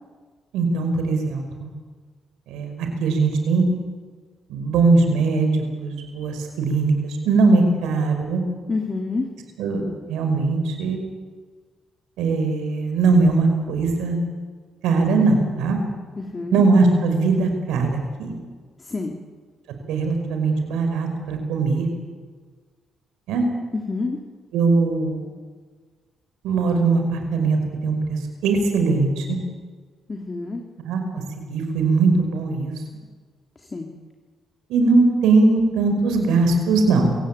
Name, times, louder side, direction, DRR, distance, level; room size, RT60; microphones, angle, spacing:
voice 1, 0.5-1.7 2.5-2.7 3.0-3.6 4.5-5.5 5.8-8.4 9.6-11.0 12.2-14.2 14.8-15.8 16.5-18.3 19.9-21.9 23.3-23.4 24.5-25.3 26.4-29.4 30.9-31.0 31.4-32.7 34.7-37.2, right 3 dB, 90° right, 5 dB, 5.5 m, -20 dB
voice 2, 8.7-9.2 16.2-16.6 18.8-19.2 23.7-24.2 30.1-30.6 33.6-33.9, left 3 dB, 30° left, 2 dB, 2.7 m, -28 dB
26.0 x 17.0 x 8.8 m, 1.5 s
cardioid pair, 90°, 0 cm